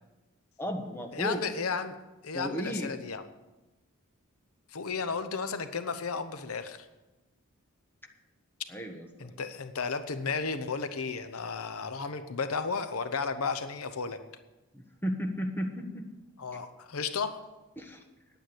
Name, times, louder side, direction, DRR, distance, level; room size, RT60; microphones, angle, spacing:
voice 1, 0.6-1.4 2.3-2.9 8.7-9.3 14.7-16.1 17.8-18.0, equal, 10° left, 3 dB, 1.3 m, -34 dB
voice 2, 1.1-1.9 2.2-3.2 4.7-6.9 9.2-14.2 16.4-17.5, left 5 dB, 75° left, 10 dB, 0.8 m, -33 dB
9.8 x 9.1 x 7.9 m, 1.1 s
head